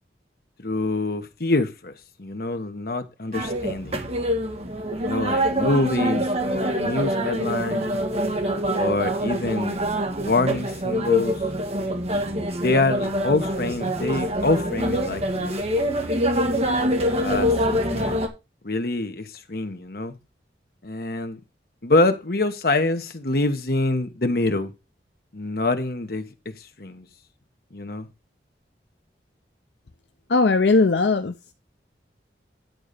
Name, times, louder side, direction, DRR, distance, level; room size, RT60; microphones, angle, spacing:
voice 1, 0.6-1.9 2.2-4.0 5.0-7.9 8.7-9.8 10.2-11.4 12.6-15.5 17.2-18.2 18.6-20.1 20.8-21.4 21.8-24.7 25.3-26.2 26.6-27.1 27.7-28.1, left 2 dB, 55° left, 1.2 m, -25 dB
sound 1, 3.3-18.3, equal, 35° right, 1.4 m, -25 dB
voice 2, 30.3-31.5, left 3 dB, 70° left, 0.6 m, -19 dB
10.5 x 4.0 x 6.6 m
head